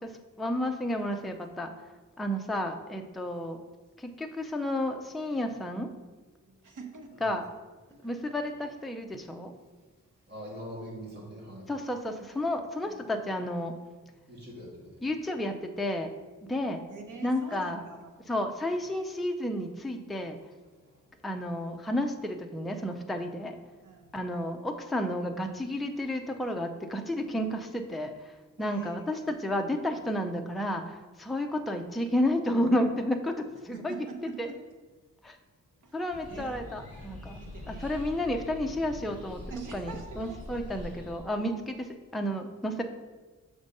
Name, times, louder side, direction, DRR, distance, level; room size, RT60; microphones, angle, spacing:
voice 1, 0.4-1.7 2.2-3.6 4.0-5.9 7.2-7.4 8.0-9.5 11.7-13.7 15.0-16.1 16.5-16.8 17.2-17.8 18.3-20.4 21.2-23.6 24.1-34.0 34.2-34.5 35.2-35.4 35.9-37.4 37.7-39.4 39.7-42.8, left 1 dB, ahead, 4 dB, 0.4 m, -31 dB
voice 2, 6.6-7.2 8.0-8.1 16.9-18.3 23.8-24.2 28.6-29.4 33.7-34.6 35.8-36.0 36.3-36.6 37.3-38.0 39.5-40.6, right 4 dB, 75° right, 3 dB, 1.0 m, -45 dB
voice 3, 10.3-11.7 12.8-12.9 14.3-15.0, equal, 30° right, -5 dB, 2.1 m, -43 dB
sound 1, 36.1-41.2, left 1 dB, 25° left, 2.0 m, -43 dB
6.6 x 3.5 x 5.3 m, 1.3 s
wide cardioid pair, 145°, 31 cm